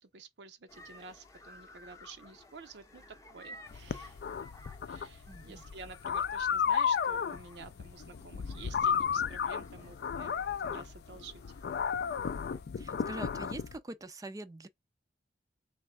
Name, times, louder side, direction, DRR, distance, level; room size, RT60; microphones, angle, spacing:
voice 1, 0.0-3.0 3.3-4.2 4.9-10.3 10.6-11.4, right 4 dB, 70° right, 0.6 m, -50 dB
sound 1, 0.7-12.6, left 1 dB, 20° left, 0.7 m, -55 dB
sound 2, 3.7-13.8, left 7 dB, 60° left, 0.3 m, -33 dB
voice 2, 5.3-5.6 12.8-14.7, right 2 dB, 20° right, 0.4 m, -44 dB
3.5 x 3.1 x 3.6 m
head